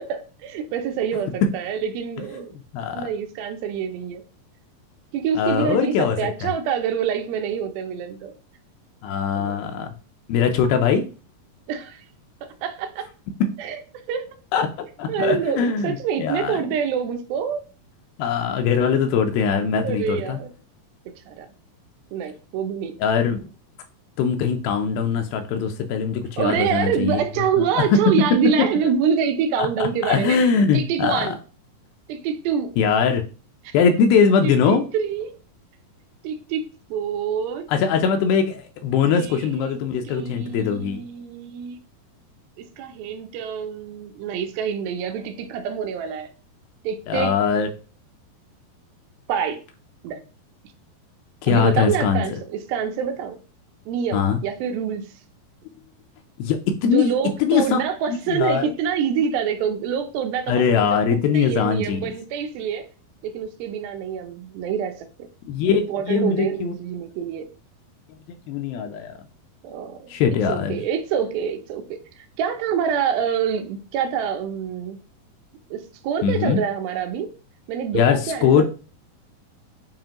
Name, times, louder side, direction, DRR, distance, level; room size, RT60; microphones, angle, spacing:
voice 1, 0.0-2.6 2.9-4.2 5.1-8.3 9.4-9.6 11.7-12.0 12.4-13.1 13.6-13.8 14.1-14.3 15.1-17.7 19.8-20.5 21.3-21.5 22.1-22.9 26.4-30.4 30.7-31.4 32.1-32.8 33.6-33.8 34.4-35.3 36.2-37.7 39.1-39.8 40.1-41.8 42.6-46.3 46.8-47.3 49.3-49.6 50.0-50.2 51.5-53.4 53.9-55.1 56.8-62.9 63.2-65.3 65.8-67.5 69.6-70.1 70.5-75.0 75.7-77.3 77.7-78.6, right 7 dB, 85° right, 2.4 m, -26 dB
voice 2, 2.7-3.0 5.4-6.5 9.0-9.9 10.3-11.0 14.5-16.6 18.2-20.4 23.0-23.4 24.2-27.2 27.6-27.7 27.9-28.0 28.4-28.7 29.6-31.3 32.8-33.2 33.7-34.8 37.7-41.0 47.1-47.7 51.4-52.2 54.1-54.4 56.4-57.1 57.4-57.8 58.1-58.7 60.5-62.0 65.4-65.8 66.1-66.7 68.5-69.1 70.1-70.8 76.2-76.6 77.9-78.6, left 6 dB, 85° left, 2.4 m, -21 dB
7.4 x 2.5 x 2.9 m
omnidirectional pair, 4.3 m